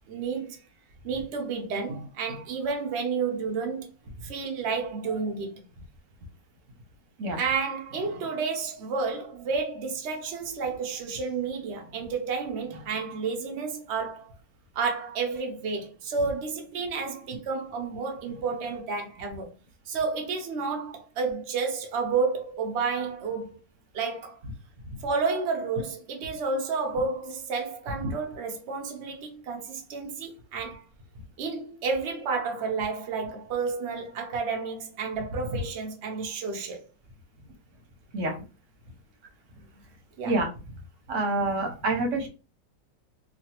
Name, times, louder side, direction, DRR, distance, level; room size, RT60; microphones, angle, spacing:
voice 1, 0.1-0.6 1.0-3.9 4.2-5.6 7.4-14.3 14.7-19.5 19.9-23.6 23.9-24.4 25.0-30.8 31.4-36.9 40.2-40.5, right 4 dB, 75° right, 0.6 m, -31 dB
voice 2, 41.1-42.3, right 2 dB, 55° right, 0.9 m, -27 dB
3.2 x 2.4 x 2.8 m
omnidirectional pair, 1.9 m